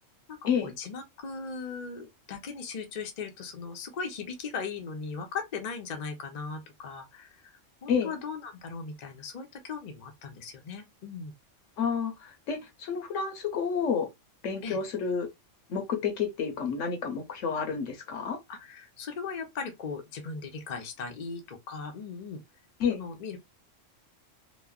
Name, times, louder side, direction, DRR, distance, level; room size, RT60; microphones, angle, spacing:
voice 1, 0.3-11.3 14.6-14.8 18.5-22.4 22.9-23.4, left 5 dB, 45° left, 0.5 m, -38 dB
voice 2, 11.8-14.1 14.4-15.3 15.7-18.4 22.8-23.0, left 6 dB, 75° left, 1.1 m, -30 dB
3.0 x 2.0 x 2.3 m
omnidirectional pair, 1.3 m